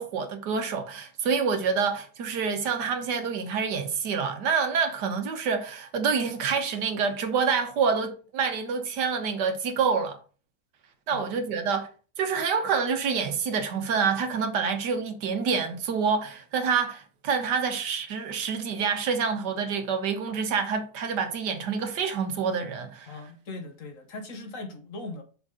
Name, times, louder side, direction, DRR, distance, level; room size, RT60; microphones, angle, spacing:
voice 1, 0.0-10.2 11.1-11.9 12.2-23.2, right 5 dB, 80° right, 1.6 m, -27 dB
voice 2, 23.1-25.2, left 3 dB, 55° left, 1.3 m, -39 dB
6.3 x 4.1 x 4.8 m
omnidirectional pair, 1.8 m